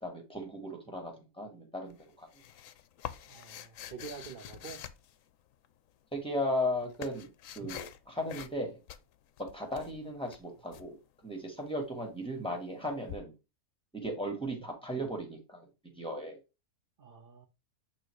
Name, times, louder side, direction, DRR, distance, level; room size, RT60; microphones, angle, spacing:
voice 1, 0.0-2.3 6.1-7.3 7.6-8.8 9.4-11.0 11.2-13.3 13.9-15.7 16.0-16.4, equal, 5° left, 2.0 m, -36 dB
sound 1, 1.9-5.7 6.4-8.0 8.3-8.6 8.9-10.9 13.1-13.2, left 10 dB, 70° left, 1.0 m, -46 dB
voice 2, 3.3-4.8 17.0-17.5, right 6 dB, 45° right, 0.9 m, -46 dB
8.8 x 3.1 x 4.6 m
omnidirectional pair, 1.5 m